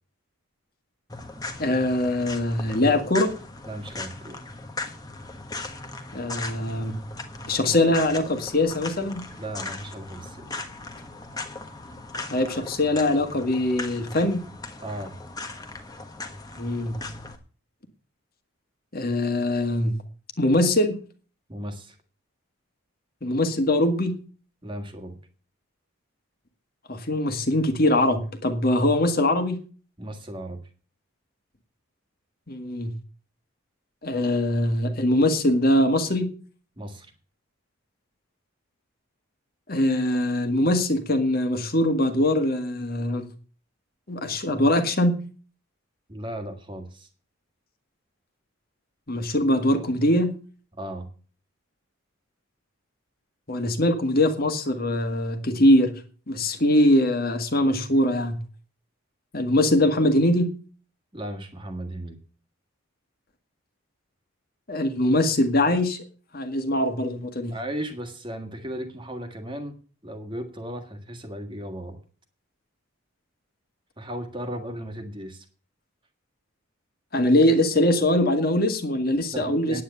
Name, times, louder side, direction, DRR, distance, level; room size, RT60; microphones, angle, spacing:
sound 1, 1.1-17.4, left 2 dB, 15° left, 1.3 m, -38 dB
voice 1, 1.6-3.3 6.1-6.9 7.5-9.3 12.3-14.4 16.6-16.9 18.9-19.9 20.4-21.0 23.2-24.2 26.9-29.6 32.5-32.9 34.0-36.3 39.7-43.3 44.1-45.2 49.1-50.3 53.5-55.9 56.3-58.4 59.3-60.5 64.7-66.0 66.3-67.5 77.1-79.8, left 1 dB, 45° left, 7 dB, 1.8 m, -22 dB
voice 2, 3.7-4.4 9.4-10.6 14.8-15.1 21.5-22.0 24.6-25.2 30.0-30.6 36.8-37.1 46.1-47.1 50.8-51.1 61.1-62.2 67.5-69.7 70.0-72.0 74.0-75.5 79.3-79.8, right 1 dB, 20° right, 6 dB, 1.7 m, -35 dB
9.6 x 9.4 x 6.8 m, 0.39 s
head